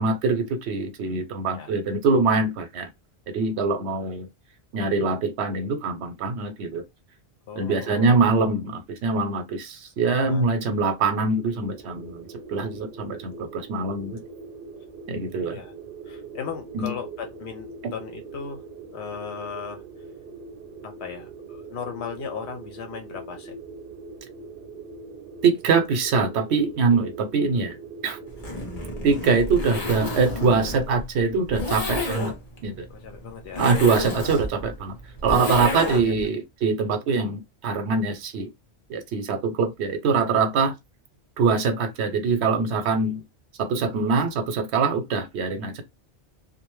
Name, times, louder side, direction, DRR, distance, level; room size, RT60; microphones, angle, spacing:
voice 1, 0.0-2.9 3.3-4.3 4.7-6.8 7.6-14.2 15.1-15.6 16.7-16.9 17.8-17.9 25.4-27.8 28.0-28.2 29.0-32.3 32.6-32.9 33.6-34.9 35.2-38.5 38.9-40.7 41.4-43.2 43.6-45.8, right 4 dB, 90° right, 0.9 m, -23 dB
voice 2, 7.5-8.3 10.2-10.5 15.4-15.7 16.1-18.6 18.9-19.8 20.8-23.6 32.9-33.7 36.1-36.2, left 6 dB, 85° left, 0.9 m, -37 dB
sound 1, 11.6-30.3, right 4 dB, 65° right, 0.8 m, -42 dB
Zipper (clothing), 28.3-36.2, left 1 dB, 40° left, 0.9 m, -30 dB
2.6 x 2.0 x 3.0 m
omnidirectional pair, 1.1 m